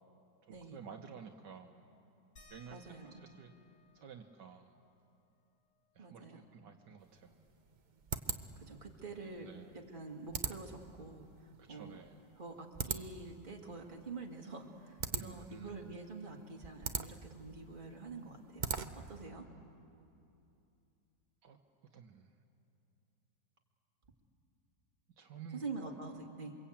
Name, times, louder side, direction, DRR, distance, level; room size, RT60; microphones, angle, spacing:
voice 1, 0.5-1.8 2.5-2.8 3.2-3.5 3.9-4.7 5.9-7.4 9.4-9.7 11.6-12.2 15.1-15.8 21.4-21.6 21.9-22.3 25.2-25.9, right 7 dB, 70° right, 4 dB, 1.7 m, -52 dB
sound 1, 2.4-7.5 7.8-7.9 8.3-10.0 11.3-11.4 12.1-12.2, left 2 dB, 55° left, 4.6 m, -67 dB
voice 2, 2.7-3.2 6.0-6.4 8.6-9.5 9.9-11.3 11.7-12.0 12.4-18.7 19.1-19.5 25.5-26.6, right 3 dB, 25° right, 0 dB, 2.3 m, -46 dB
sound 2, 7.0-19.2, right 5 dB, 50° right, 0.5 m, -43 dB
28.0 x 23.5 x 8.7 m, 2.7 s
omnidirectional pair, 2.0 m